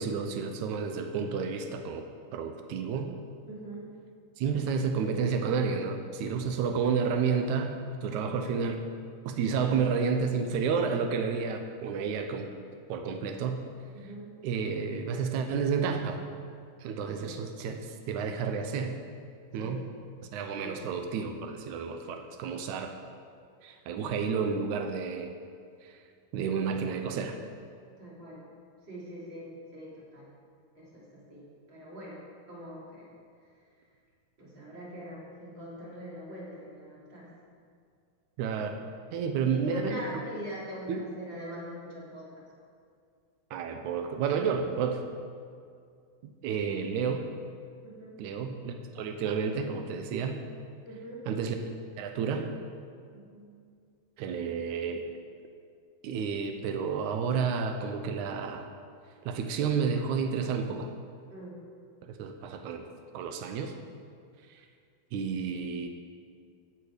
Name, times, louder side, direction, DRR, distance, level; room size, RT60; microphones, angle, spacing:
voice 1, 0.0-3.1 4.4-8.8 9.2-12.5 12.9-13.7 14.4-16.2 16.8-19.0 19.5-19.8 20.3-22.9 23.6-25.3 25.8-25.9 26.3-27.4 38.4-38.8 39.1-40.1 40.9-41.1 43.5-45.0 46.2-47.3 48.2-50.4 51.3-51.5 52.0-52.5 54.2-55.1 56.0-58.7 59.2-60.9 62.0-63.7 64.5-64.6 65.1-65.9, right 6 dB, 90° right, 5 dB, 1.7 m, -31 dB
voice 2, 3.5-3.9 13.9-14.3 17.2-17.4 19.6-19.8 20.6-20.9 28.0-28.4 28.9-30.3 30.8-32.2 32.5-33.1 34.4-37.3 39.5-42.4 47.8-48.2 50.8-51.2 53.1-53.5 61.3-61.6, equal, 30° right, -7 dB, 3.8 m, -43 dB
16.0 x 8.9 x 5.0 m, 2.3 s
omnidirectional pair, 4.4 m